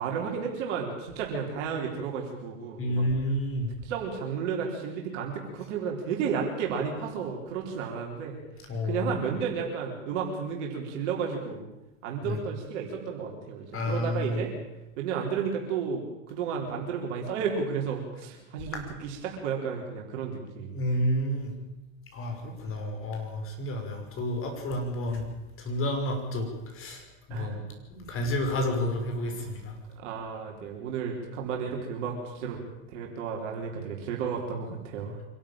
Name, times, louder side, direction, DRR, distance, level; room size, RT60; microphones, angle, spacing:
voice 1, 0.0-3.1 3.8-8.4 8.8-11.7 12.0-14.5 15.0-20.8 27.3-27.6 30.0-32.6 32.9-35.2, right 6 dB, 65° right, 0 dB, 4.3 m, -32 dB
voice 2, 2.8-3.7 8.7-9.1 12.2-12.4 13.7-14.4 18.7-18.8 20.7-21.5 22.1-25.3 25.6-27.0 27.3-27.6 27.9-29.8, left 1 dB, 35° left, 4 dB, 5.8 m, -30 dB
25.0 x 12.5 x 9.0 m, 0.98 s
hypercardioid pair, 115°, 39 cm